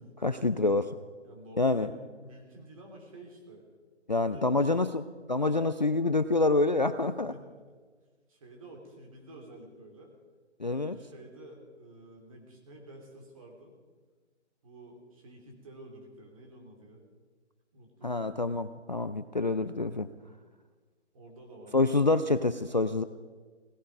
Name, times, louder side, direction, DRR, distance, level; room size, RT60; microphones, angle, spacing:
voice 1, 0.2-0.9 1.6-1.9 4.1-5.0 5.3-7.3 10.6-11.0 18.0-20.1 21.7-23.0, left 3 dB, 40° left, 11 dB, 0.4 m, -27 dB
voice 2, 1.2-3.7 4.1-4.8 5.4-5.6 7.2-7.4 8.3-10.1 10.7-13.7 14.6-17.0 17.7-18.4 21.1-21.8, right 1 dB, 30° right, 1 dB, 2.8 m, -50 dB
17.0 x 14.0 x 5.1 m, 1.5 s
hypercardioid pair, 165°, 35 cm